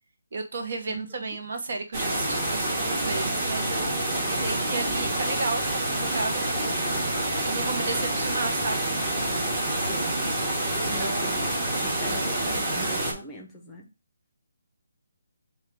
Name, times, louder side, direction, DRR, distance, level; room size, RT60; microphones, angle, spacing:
voice 1, 0.3-8.9 10.8-11.6, right 3 dB, 55° right, 0.9 m, -34 dB
voice 2, 0.9-1.4 9.8-10.1 10.9-11.4 11.8-13.9, equal, 10° left, 0.7 m, -41 dB
sound 1, 1.9-13.1, right 1 dB, 20° right, 1.1 m, -27 dB
5.4 x 2.4 x 3.4 m
hypercardioid pair, 165°, 0 cm